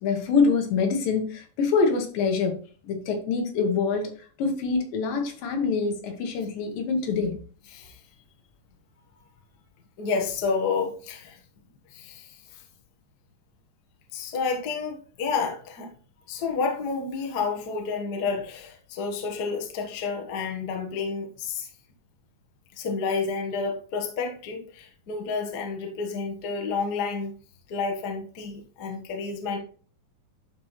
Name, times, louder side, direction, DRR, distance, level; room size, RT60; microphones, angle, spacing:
voice 1, 0.0-4.1 4.4-7.4, left 4 dB, 85° left, 2.9 m, -25 dB
voice 2, 10.0-11.4 11.9-12.6 14.1-15.9 16.3-21.7 22.8-27.3 27.7-29.6, left 5 dB, 55° left, 1.1 m, -30 dB
11.0 x 4.4 x 3.2 m
omnidirectional pair, 3.9 m